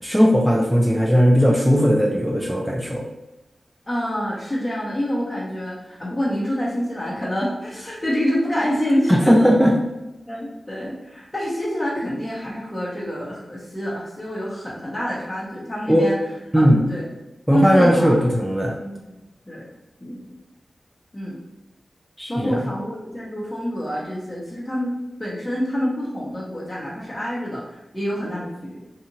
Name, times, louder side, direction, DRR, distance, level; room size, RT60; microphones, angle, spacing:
voice 1, 0.0-3.0 9.1-9.7 15.9-16.1 16.5-16.9 17.5-18.8 22.2-22.6, equal, 5° right, 0 dB, 0.4 m, -17 dB
voice 2, 3.9-9.5 10.3-16.2 16.5-17.0 17.5-18.2 18.6-19.0 19.5-19.7 20.0-20.2 21.1-21.4 22.3-24.9 25.2-28.8, equal, 15° left, -7 dB, 0.8 m, -27 dB
2.8 x 2.4 x 2.8 m, 0.97 s
cardioid pair, 60°, 0 cm